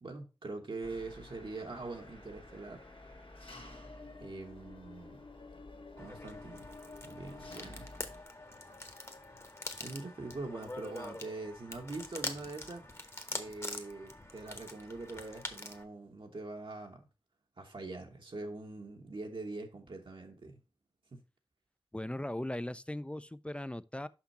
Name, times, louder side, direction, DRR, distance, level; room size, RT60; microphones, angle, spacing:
voice 1, 0.0-2.8 4.2-5.3 6.0-6.7 7.0-7.9 9.8-12.9 13.3-17.0 17.6-20.6 21.1-21.2, right 3 dB, 70° right, 1.1 m, -43 dB
Engine, 0.8-8.2, left 2 dB, 85° left, 1.5 m, -52 dB
sound 1, 1.4-11.1, left 3 dB, 65° left, 0.7 m, -57 dB
sound 2, 6.0-15.8, left 1 dB, 30° left, 1.0 m, -45 dB
voice 2, 21.9-24.1, left 1 dB, 15° left, 0.4 m, -38 dB
5.9 x 5.6 x 4.1 m
wide cardioid pair, 75°, 9 cm